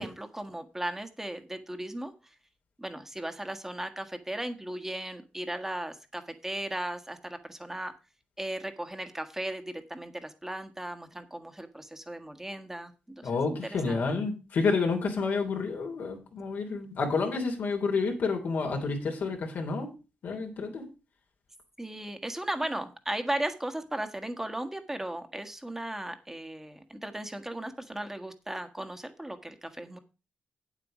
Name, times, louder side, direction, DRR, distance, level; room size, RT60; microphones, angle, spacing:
voice 1, 0.0-2.1 2.8-7.9 8.4-14.0 21.8-30.0, right 1 dB, 10° right, 7 dB, 1.5 m, -36 dB
voice 2, 13.2-19.9 20.2-20.8, left 4 dB, 75° left, 2 dB, 3.2 m, -29 dB
8.7 x 8.2 x 5.0 m, 0.31 s
cardioid pair, 80°, 3 cm